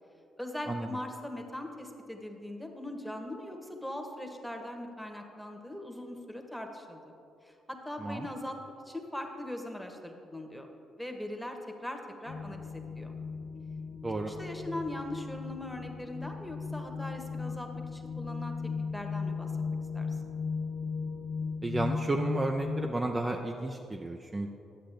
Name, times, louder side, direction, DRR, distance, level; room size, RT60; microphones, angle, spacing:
voice 1, 0.4-7.1 7.4-8.6 8.8-10.7 11.0-13.1 14.3-18.5 18.9-20.1, left 1 dB, ahead, 3 dB, 1.1 m, -40 dB
sound 1, 12.3-22.9, left 5 dB, 75° left, 0.7 m, -36 dB
voice 2, 21.6-24.5, right 2 dB, 25° right, 2 dB, 0.5 m, -32 dB
10.0 x 7.5 x 3.4 m, 2.7 s
hypercardioid pair, 50°, 0 cm